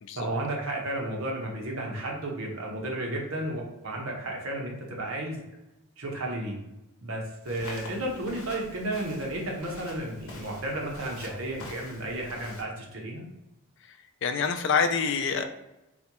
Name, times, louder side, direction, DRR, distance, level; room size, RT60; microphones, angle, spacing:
voice 1, 0.2-5.4 6.0-6.6 7.0-13.2, right 1 dB, 70° right, -1 dB, 0.9 m, -33 dB
Walk footsteps, 7.4-12.6, left 2 dB, 80° left, 0.8 m, -45 dB
voice 2, 14.2-15.5, left 5 dB, 55° left, 7 dB, 0.3 m, -26 dB
4.1 x 2.3 x 2.9 m, 0.95 s
head